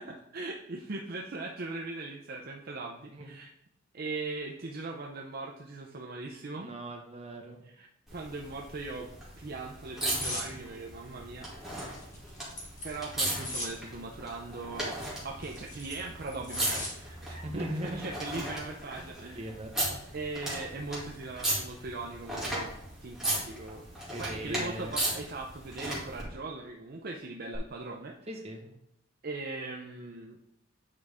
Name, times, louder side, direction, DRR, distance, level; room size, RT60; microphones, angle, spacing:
voice 1, 0.0-3.5 3.9-6.7 7.6-9.1 9.4-11.5 12.8-15.0 15.2-19.5 20.1-22.7 23.0-23.9 24.2-28.2 29.2-30.4, right 3 dB, 50° right, 1 dB, 0.6 m, -39 dB
voice 2, 6.6-7.6 17.4-18.0 19.3-19.7 24.1-25.0 28.3-28.7, right 1 dB, 30° right, 1 dB, 1.2 m, -39 dB
sound 1, 8.1-26.2 27.5-27.6, right 1 dB, 5° right, 2.2 m, -37 dB
sound 2, 10.1-10.5 11.9-13.7 15.2-16.9 17.3-17.6, left 1 dB, 40° left, 1.8 m, -38 dB
8.7 x 4.9 x 3.5 m, 0.79 s
head